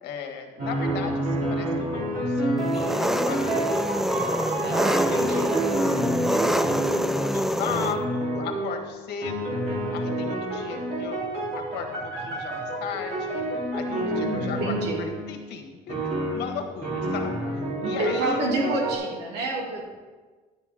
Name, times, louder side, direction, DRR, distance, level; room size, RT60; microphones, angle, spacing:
voice 1, 0.0-3.7 4.6-5.5 6.3-11.2 11.5-13.5 13.7-17.3 17.8-18.4, left 7 dB, 80° left, 3 dB, 1.6 m, -37 dB
sound 1, 0.6-7.4 7.7-8.8 9.2-15.3 15.9-19.0, right 1 dB, 50° right, 3.7 m, -29 dB
Engine, 2.7-7.9, equal, ahead, 0.4 m, -25 dB
voice 2, 4.6-5.5 13.9-15.0 17.7-19.8, right 2 dB, 80° right, -1 dB, 2.9 m, -29 dB
11.5 x 9.2 x 3.7 m, 1.4 s
cardioid pair, 110°, 17 cm